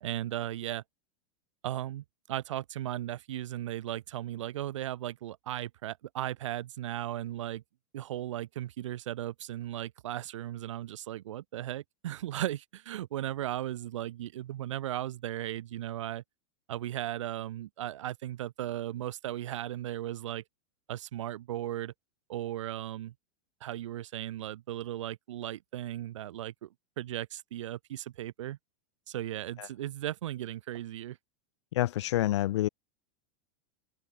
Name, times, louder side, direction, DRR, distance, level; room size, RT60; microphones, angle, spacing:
voice 1, 0.0-0.8 1.6-7.6 7.9-16.2 16.7-20.4 20.9-21.9 22.3-23.1 23.6-26.7 27.0-28.6 29.1-31.2, right 13 dB, 90° right, 1.1 m, -36 dB
voice 2, 31.7-32.7, left 14 dB, 70° left, 1.3 m, -28 dB
supercardioid pair, 170°, 15 cm